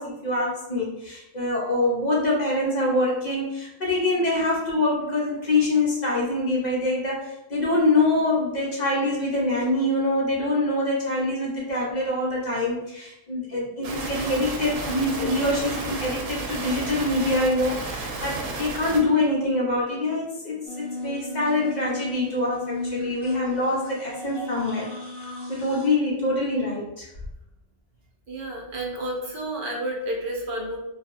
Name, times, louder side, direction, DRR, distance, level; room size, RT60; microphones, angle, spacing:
voice 1, 0.0-20.6 21.0-24.9 25.5-27.1, left 2 dB, 55° left, -4 dB, 0.5 m, -25 dB
sound 1, 13.8-19.0, right 3 dB, 85° right, 1.0 m, -32 dB
sound 2, 20.7-25.9, left 2 dB, 20° left, 0.9 m, -35 dB
voice 2, 28.3-30.8, right 1 dB, 55° right, -1 dB, 0.6 m, -30 dB
2.7 x 2.3 x 2.4 m, 0.87 s
omnidirectional pair, 1.3 m